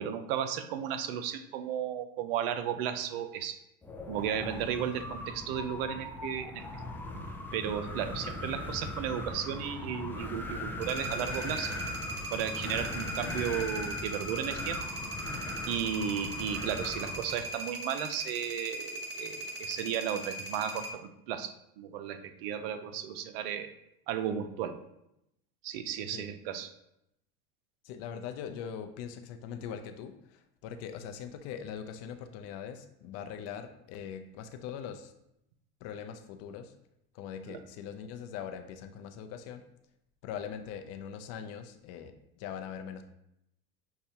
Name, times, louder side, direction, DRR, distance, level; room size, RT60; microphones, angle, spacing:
voice 1, 0.0-3.6 4.1-6.8 7.5-11.8 12.3-14.8 15.7-23.7 24.1-24.8 25.6-26.7 37.5-37.6, right 9 dB, 80° right, 10 dB, 0.5 m, -34 dB
Wind, 3.8-17.5, left 1 dB, 5° left, 0.4 m, -39 dB
sound 1, 10.8-20.9, right 1 dB, 35° right, 0.8 m, -39 dB
voice 2, 27.8-35.1 35.8-36.7 37.1-39.6 40.2-43.0, left 8 dB, 60° left, 7 dB, 0.5 m, -41 dB
6.6 x 2.3 x 2.8 m, 0.82 s
supercardioid pair, 110°, 29 cm